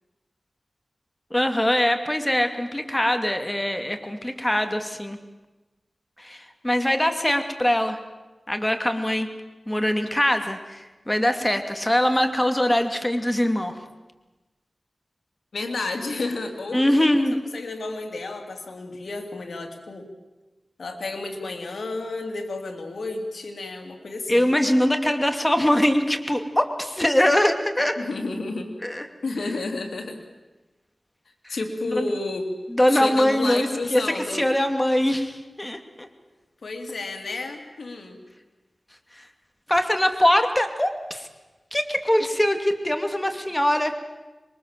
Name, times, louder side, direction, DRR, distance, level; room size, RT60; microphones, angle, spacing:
voice 1, 1.3-5.2 6.2-8.0 8.5-9.3 9.7-13.7 16.7-17.3 24.3-28.0 28.8-29.1 31.4-31.6 32.0-32.1 32.7-36.1 39.2-39.3 39.7-41.3 41.7-43.9, left 1 dB, 15° left, 7 dB, 2.6 m, -22 dB
voice 2, 15.5-20.1 20.8-24.5 28.0-28.7 29.2-30.2 31.5-32.5 32.9-34.5 36.6-38.2 42.2-42.3, left 3 dB, 85° left, 5 dB, 3.1 m, -31 dB
26.0 x 22.5 x 7.6 m, 1.1 s
wide cardioid pair, 55°, 0 cm